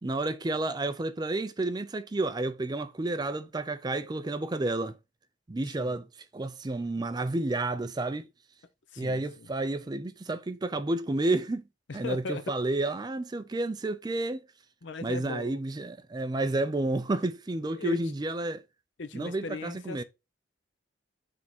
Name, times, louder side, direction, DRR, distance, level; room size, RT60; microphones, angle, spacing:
voice 1, 0.0-4.9 5.5-6.1 6.3-8.3 9.0-11.6 11.9-14.5 15.0-18.6 19.1-20.0, right 2 dB, 20° right, 0.4 m, -30 dB
voice 2, 8.9-9.5 12.0-12.4 14.8-15.6 17.8-18.0 19.0-20.0, left 3 dB, 70° left, 0.7 m, -38 dB
6.2 x 3.5 x 4.2 m
head